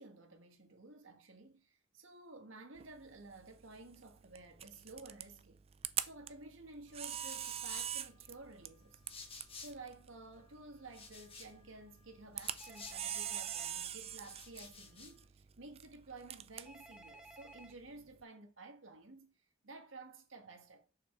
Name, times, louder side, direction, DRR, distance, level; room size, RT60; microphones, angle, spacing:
voice 1, 0.0-5.6 6.0-9.1 9.6-19.3 19.6-20.9, right 3 dB, 85° right, 1.6 m, -53 dB
Camera, 2.8-18.2, right 10 dB, 30° right, 0.4 m, -45 dB
sound 1, 6.9-10.0 10.3-13.5 14.0-15.3, left 4 dB, 30° left, 1.3 m, -55 dB
Telephone, 12.6-13.7 16.7-17.7, right 1 dB, 5° right, 1.0 m, -55 dB
6.7 x 5.5 x 4.4 m
head